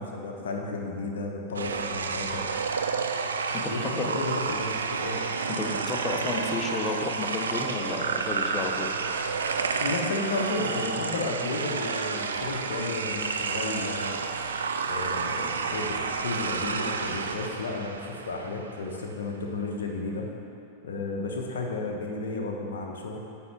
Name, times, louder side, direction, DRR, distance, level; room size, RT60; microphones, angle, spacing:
voice 1, 0.0-2.4 3.6-5.2 9.8-14.2 14.8-15.9 16.2-20.3 20.8-23.2, left 3 dB, 65° left, 1 dB, 0.9 m, -33 dB
sound 1, 1.5-18.9, right 5 dB, 70° right, 0.4 m, -30 dB
voice 2, 3.6-4.2 5.6-8.9, left 3 dB, 20° left, 2 dB, 0.9 m, -32 dB
9.4 x 3.7 x 5.9 m, 2.7 s
figure-of-eight pair, 90°, 0 cm